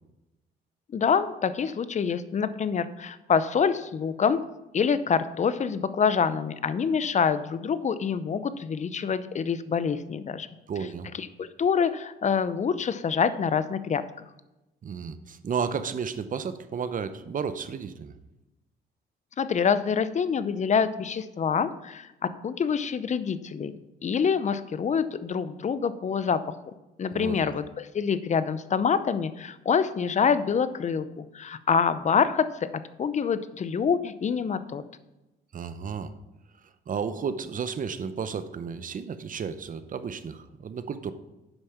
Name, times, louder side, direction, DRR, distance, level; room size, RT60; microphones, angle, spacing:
voice 1, 0.9-4.4 4.7-10.5 11.2-14.0 19.4-23.7 24.0-26.6 27.0-32.5 33.0-34.8, left 6 dB, 35° left, 13 dB, 0.6 m, -26 dB
voice 2, 10.7-11.1 14.8-18.1 27.1-27.5 35.5-36.1 36.9-41.1, right 6 dB, 45° right, 12 dB, 0.7 m, -33 dB
8.1 x 5.3 x 5.8 m, 1.0 s
cardioid pair, 90°, 20 cm